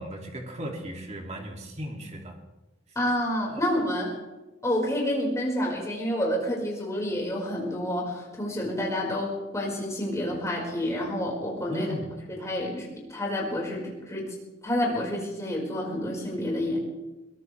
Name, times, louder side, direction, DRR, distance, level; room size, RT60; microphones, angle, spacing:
voice 1, 0.0-2.4 3.5-3.6 11.7-12.1, equal, 35° right, 2 dB, 2.5 m, -37 dB
voice 2, 2.9-4.1 4.6-11.9 12.3-14.4 14.6-16.8, left 1 dB, 15° left, -3 dB, 4.9 m, -29 dB
22.0 x 18.0 x 3.3 m, 1.1 s
head